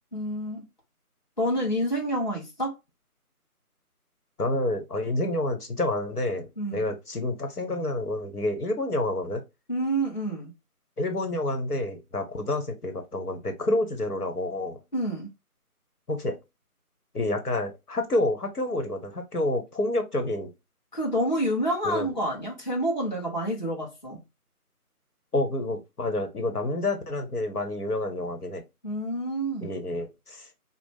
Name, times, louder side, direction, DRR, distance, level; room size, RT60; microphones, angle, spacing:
voice 1, 0.1-0.6 1.4-2.7 6.6-6.9 9.7-10.5 14.9-15.3 20.9-24.2 28.8-29.7, right 1 dB, 30° left, 1.0 m, -28 dB
voice 2, 4.4-9.4 11.0-14.8 16.1-16.4 17.1-20.5 21.8-22.1 25.3-28.6 29.6-30.5, left 1 dB, 75° left, 1.1 m, -28 dB
4.4 x 2.0 x 3.5 m
figure-of-eight pair, 170°, 45 cm